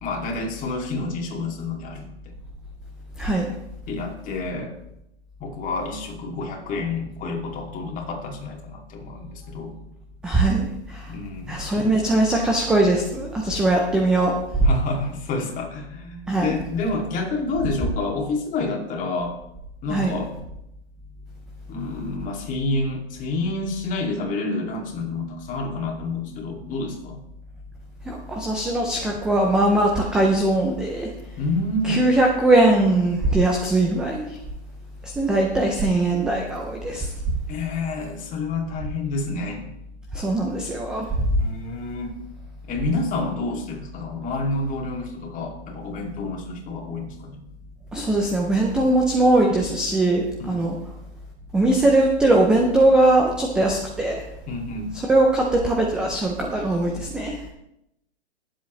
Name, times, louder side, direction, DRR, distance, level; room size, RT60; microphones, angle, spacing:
voice 1, 0.0-2.1 3.9-4.7 5.4-9.7 11.1-11.6 14.6-19.4 19.8-20.4 21.7-27.2 31.4-32.0 37.5-39.7 41.4-42.2 42.7-47.4 50.4-50.7 54.5-54.9, left 2 dB, 25° left, 0 dB, 2.4 m, -28 dB
voice 2, 3.2-3.5 10.2-11.1 11.5-14.3 16.3-16.6 19.9-20.2 28.1-31.1 31.9-34.4 35.0-37.1 40.1-41.3 47.9-50.8 51.5-54.2 55.1-57.4, right 2 dB, ahead, 0 dB, 0.3 m, -20 dB
18.5 x 7.6 x 3.1 m, 0.83 s
hypercardioid pair, 135°, 34 cm